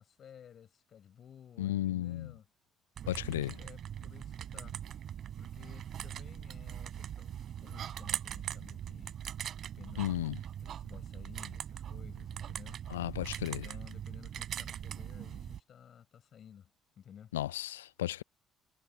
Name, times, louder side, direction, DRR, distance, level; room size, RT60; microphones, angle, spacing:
voice 1, 0.0-2.5 3.0-4.8 5.4-9.2 9.8-13.1 13.6-16.7 17.0-17.4, left 9 dB, 50° left, 6.0 m, -55 dB
voice 2, 1.6-2.3 3.1-3.5 10.0-10.3 12.9-13.6 17.3-18.2, left 13 dB, 80° left, 0.3 m, -34 dB
sound 1, 3.0-15.6, right 10 dB, 55° right, 4.1 m, -41 dB
figure-of-eight pair, 45°, 0 cm